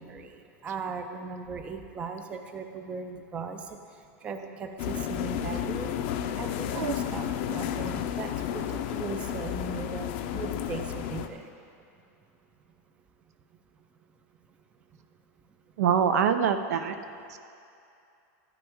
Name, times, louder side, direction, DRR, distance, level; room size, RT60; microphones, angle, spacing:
voice 1, 0.0-3.8 4.2-5.9 6.4-11.4, right 5 dB, 15° right, 6 dB, 0.4 m, -38 dB
sound 1, 4.8-11.3, left 9 dB, 45° left, 0.5 m, -32 dB
voice 2, 15.8-16.9 17.3-17.4, right 8 dB, 85° right, 9 dB, 0.6 m, -24 dB
12.0 x 9.2 x 3.5 m, 2.6 s
supercardioid pair, 175°, 8 cm